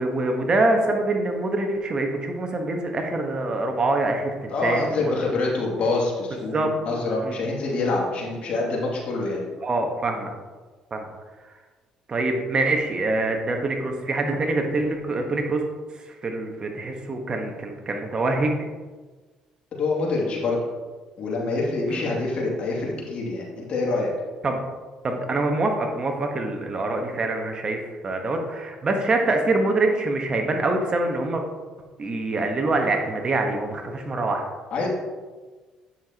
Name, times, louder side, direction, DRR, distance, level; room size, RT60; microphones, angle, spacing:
voice 1, 0.0-5.1 6.3-6.7 7.2-7.3 9.6-10.3 10.9-11.1 11.4-11.5 12.1-15.6 15.9-18.7 21.9-22.1 24.4-24.6 25.0-31.4 32.0-34.4, right 2 dB, 40° right, 3 dB, 1.3 m, -25 dB
voice 2, 4.5-9.4 19.8-20.6 21.2-24.1 34.7-34.9, left 3 dB, 55° left, -3 dB, 2.6 m, -26 dB
9.1 x 6.8 x 3.0 m, 1.3 s
supercardioid pair, 75°, 2 cm